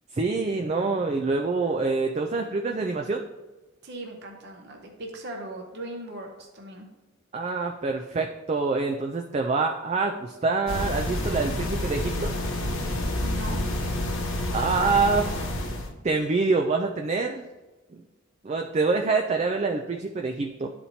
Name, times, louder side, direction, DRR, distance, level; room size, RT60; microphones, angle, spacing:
voice 1, 0.1-3.3 7.3-12.3 14.5-15.3 16.0-17.5 17.9-18.0 18.4-20.7, right 4 dB, 35° right, 3 dB, 0.4 m, -26 dB
voice 2, 3.8-6.9 13.2-13.6, right 1 dB, 55° right, 1 dB, 0.8 m, -39 dB
sound 1, 10.7-15.9, left 1 dB, 85° left, 1.0 m, -29 dB
11.0 x 4.3 x 2.8 m, 1.2 s
head